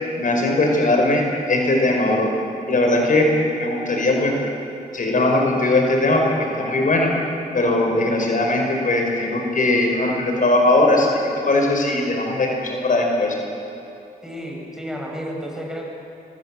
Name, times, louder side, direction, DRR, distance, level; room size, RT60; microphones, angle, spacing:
voice 1, 0.2-2.3 2.7-4.3 4.9-7.1 7.5-13.4, left 2 dB, 55° left, 1 dB, 5.0 m, -19 dB
voice 2, 14.2-15.8, equal, 5° right, -1 dB, 7.7 m, -31 dB
26.0 x 22.0 x 7.6 m, 3.0 s
cardioid pair, 65°, 16 cm